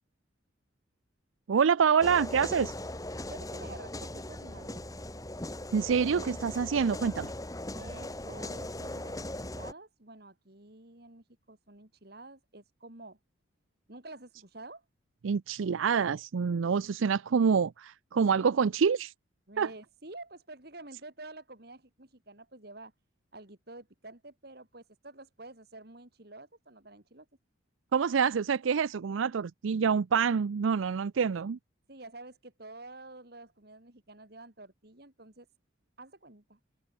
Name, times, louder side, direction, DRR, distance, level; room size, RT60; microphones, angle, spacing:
voice 1, 1.5-2.7 5.7-7.3 15.2-19.1 19.6-19.7 27.9-31.6, right 6 dB, 90° right, 0.5 m, -26 dB
sound 1, 2.0-9.7, left 1 dB, 20° left, 1.9 m, -39 dB
voice 2, 3.2-4.9 7.7-13.2 13.9-14.8 19.5-22.9 23.3-27.3 31.9-35.5 36.0-36.6, right 2 dB, 55° right, 3.1 m, -49 dB
open air
head